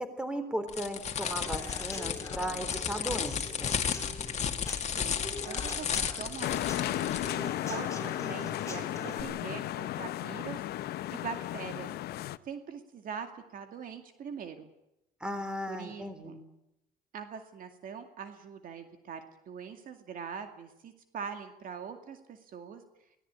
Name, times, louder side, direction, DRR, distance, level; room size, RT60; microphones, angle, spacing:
voice 1, 0.2-3.8 15.2-16.4, equal, 5° right, 9 dB, 3.6 m, -36 dB
sound 1, 0.7-7.3, left 7 dB, 40° left, 2.2 m, -34 dB
Human voice / Acoustic guitar / Drum, 1.2-9.2, left 2 dB, 20° left, 4.4 m, -43 dB
voice 2, 5.0-11.9 12.4-14.7 15.7-16.4 17.1-22.8, right 6 dB, 55° right, 7 dB, 2.3 m, -43 dB
sound 2, 6.4-12.4, left 14 dB, 70° left, 0.8 m, -34 dB
23.0 x 18.0 x 8.9 m, 0.87 s
cardioid pair, 110°, 17 cm